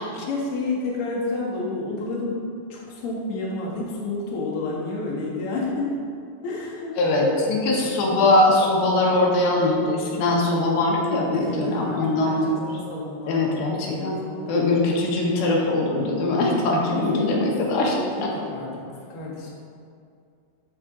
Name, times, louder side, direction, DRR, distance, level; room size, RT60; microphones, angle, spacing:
voice 1, 0.3-5.9 6.4-6.9 10.3-10.4 11.3-14.8 16.9-17.5 18.0-18.8 19.1-19.5, left 3 dB, 50° left, -4 dB, 1.9 m, -30 dB
voice 2, 7.0-12.8 13.3-14.2 14.5-18.3, left 2 dB, 85° left, -2 dB, 3.1 m, -21 dB
14.0 x 5.0 x 3.7 m, 2.4 s
omnidirectional pair, 4.2 m